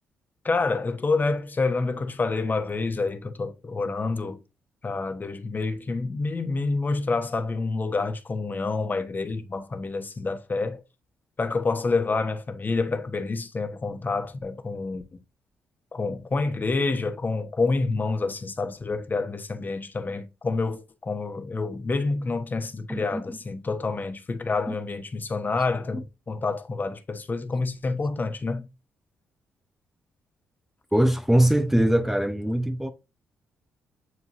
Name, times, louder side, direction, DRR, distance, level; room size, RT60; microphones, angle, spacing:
voice 1, 0.4-4.4 4.8-10.8 11.4-15.0 15.9-28.7, left 3 dB, 30° left, 1.3 m, -28 dB
voice 2, 22.9-23.4 24.7-24.8 25.9-26.0 30.9-32.9, right 1 dB, 5° right, 0.9 m, -22 dB
9.6 x 4.6 x 2.7 m
figure-of-eight pair, 40°, 6 cm